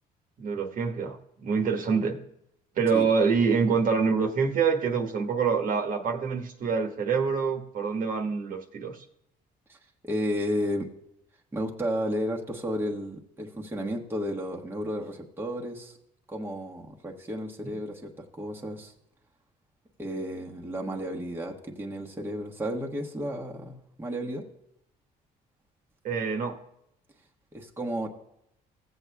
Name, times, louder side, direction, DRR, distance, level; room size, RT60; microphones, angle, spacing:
voice 1, 0.4-2.2 2.8-9.0 26.0-26.6, right 5 dB, 55° right, 4 dB, 1.3 m, -26 dB
voice 2, 10.0-10.9 11.5-16.0 16.3-18.9 20.0-24.4 27.5-28.1, equal, 15° right, -1 dB, 1.2 m, -32 dB
16.0 x 8.0 x 2.3 m, 0.78 s
cardioid pair, 110°, 17 cm